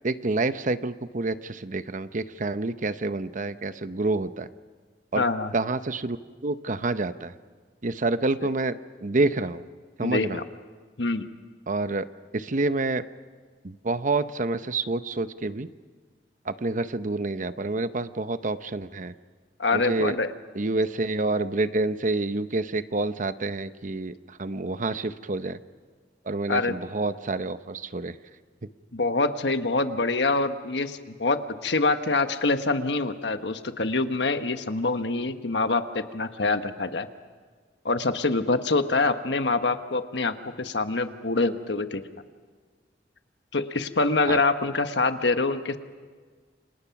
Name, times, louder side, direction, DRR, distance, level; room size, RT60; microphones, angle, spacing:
voice 1, 0.0-4.5 5.1-5.2 5.5-6.2 6.4-7.3 7.8-8.8 9.0-9.6 10.0-10.4 11.7-12.1 12.3-13.0 13.6-15.7 16.5-19.1 19.7-20.2 20.5-24.1 24.4-25.6 26.3-28.1 44.3-44.4, right 2 dB, 45° right, 12 dB, 0.8 m, -28 dB
voice 2, 5.1-5.5 8.4-8.5 10.0-10.4 11.0-11.3 19.6-20.3 26.5-26.8 28.9-37.1 37.8-42.0 43.5-45.8, left 3 dB, 75° left, 8 dB, 1.3 m, -25 dB
29.0 x 26.0 x 6.0 m, 1.5 s
head